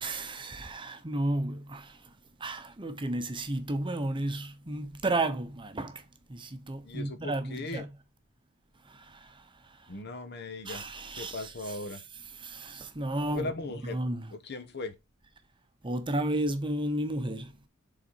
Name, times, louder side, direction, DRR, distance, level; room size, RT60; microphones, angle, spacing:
voice 1, 0.0-2.1 2.4-6.0 6.3-7.9 8.9-9.9 10.7-12.0 12.3-13.5 13.9-14.3 15.8-17.6, right 1 dB, 25° right, 0.8 m, -33 dB
voice 2, 6.8-7.9 9.9-10.9 11.2-12.0 13.3-14.0 14.3-14.9, left 2 dB, 50° left, 1.0 m, -38 dB
6.8 x 4.0 x 4.6 m
head